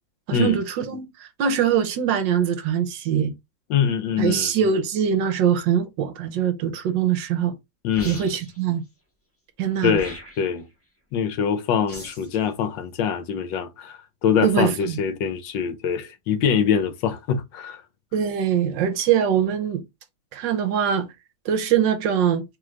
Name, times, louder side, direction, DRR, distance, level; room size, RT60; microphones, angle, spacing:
voice 1, 0.3-1.1 1.4-3.3 4.2-7.5 8.0-8.8 9.6-10.0 14.4-15.0 18.1-19.8 20.3-21.1 21.4-22.4, right 8 dB, 75° right, 1.3 m, -22 dB
voice 2, 3.7-4.5 7.8-8.3 9.8-10.7 11.1-17.8, left 7 dB, 75° left, 1.3 m, -24 dB
sound 1, 7.9-8.6 9.9-10.6 11.9-12.4, left 1 dB, 10° left, 1.0 m, -40 dB
3.7 x 3.3 x 3.1 m
omnidirectional pair, 2.1 m